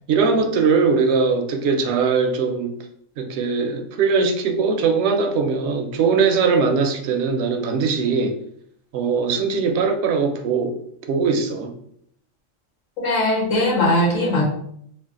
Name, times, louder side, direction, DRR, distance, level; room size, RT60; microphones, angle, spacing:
voice 1, 0.1-2.8 3.2-8.4 8.9-10.7 11.1-11.7, right 5 dB, 70° right, 6 dB, 0.8 m, -20 dB
voice 2, 13.0-14.4, left 1 dB, 85° left, -3 dB, 1.5 m, -19 dB
3.4 x 2.4 x 3.7 m, 0.67 s
omnidirectional pair, 1.3 m